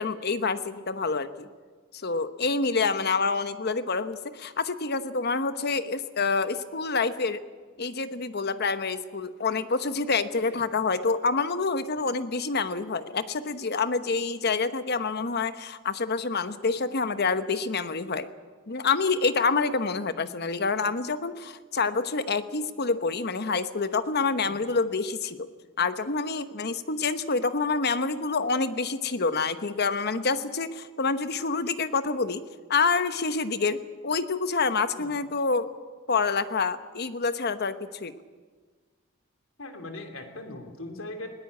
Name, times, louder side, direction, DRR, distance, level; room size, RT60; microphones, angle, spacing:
voice 1, 0.0-1.5 2.0-7.4 7.8-18.3 18.7-25.5 25.8-32.4 32.7-35.7 36.1-38.1, left 4 dB, 50° left, 11 dB, 1.0 m, -27 dB
voice 2, 39.6-41.3, left 2 dB, 80° left, 5 dB, 3.0 m, -39 dB
20.5 x 18.5 x 8.5 m, 1.5 s
head